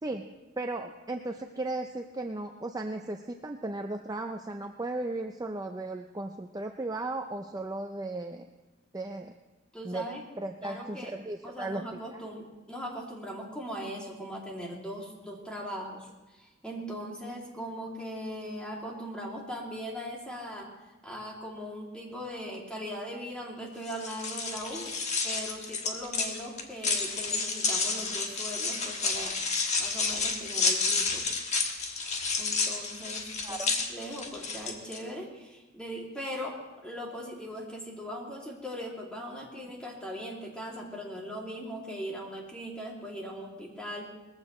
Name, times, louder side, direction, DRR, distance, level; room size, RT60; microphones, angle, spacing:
voice 1, 0.6-8.5 8.9-9.3 9.8-10.1 10.4-11.8 12.1-12.2 33.4-33.7, right 2 dB, 20° right, 4 dB, 0.5 m, -36 dB
voice 2, 9.7-10.3 10.6-11.1 11.4-16.1 16.3-20.7 21.0-24.9 25.2-29.3 29.8-31.3 32.4-33.6 33.9-44.1, equal, 5° left, -3 dB, 2.7 m, -39 dB
sound 1, 23.8-35.0, left 4 dB, 35° left, 1.4 m, -30 dB
20.5 x 15.0 x 3.2 m, 1.1 s
head